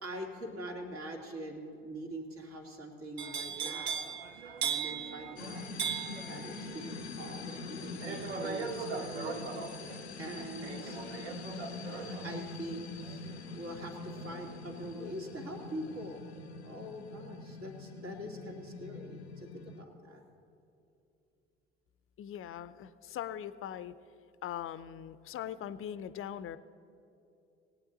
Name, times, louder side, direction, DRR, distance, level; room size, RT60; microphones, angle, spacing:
voice 1, 0.0-4.0 4.6-5.6 6.3-9.4 10.2-11.0 12.2-16.2 16.6-20.2, right 1 dB, 45° right, 1 dB, 2.5 m, -43 dB
sound 1, 3.2-15.1 15.5-15.9, right 6 dB, 85° right, 0.7 m, -40 dB
sound 2, 5.4-19.8, left 4 dB, 90° left, 0.6 m, -44 dB
voice 2, 22.2-24.0 24.4-26.6, left 10 dB, 45° left, 15 dB, 0.6 m, -41 dB
19.5 x 8.8 x 4.0 m, 2.8 s
hypercardioid pair, 50°, 32 cm